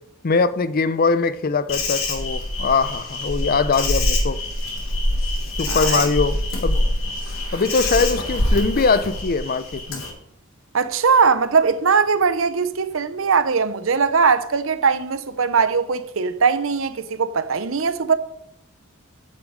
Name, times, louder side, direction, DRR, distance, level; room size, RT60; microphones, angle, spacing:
voice 1, 0.2-4.4 5.6-6.8 7.5-10.0, left 4 dB, 45° left, 0.5 m, -21 dB
Insect, 1.7-10.1, left 1 dB, 85° left, 3.1 m, -24 dB
voice 2, 5.7-6.0 10.7-18.1, right 5 dB, 70° right, 0.7 m, -20 dB
9.3 x 7.5 x 5.1 m
head